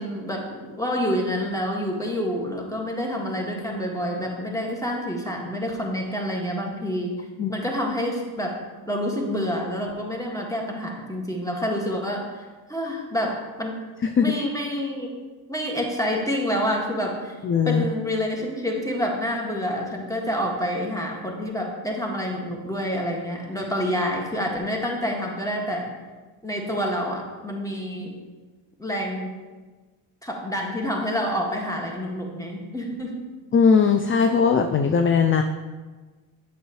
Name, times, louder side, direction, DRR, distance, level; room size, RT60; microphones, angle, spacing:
voice 1, 0.0-7.1 7.5-8.6 8.8-12.2 12.7-13.7 14.2-15.1 15.5-17.4 17.6-25.9 26.4-28.2 28.8-29.3 30.2-33.1, equal, 5° left, -1 dB, 1.9 m, -28 dB
voice 2, 17.4-17.8 33.5-35.4, left 6 dB, 25° left, 6 dB, 0.4 m, -19 dB
8.0 x 6.6 x 3.1 m, 1.3 s
supercardioid pair, 55°, 49 cm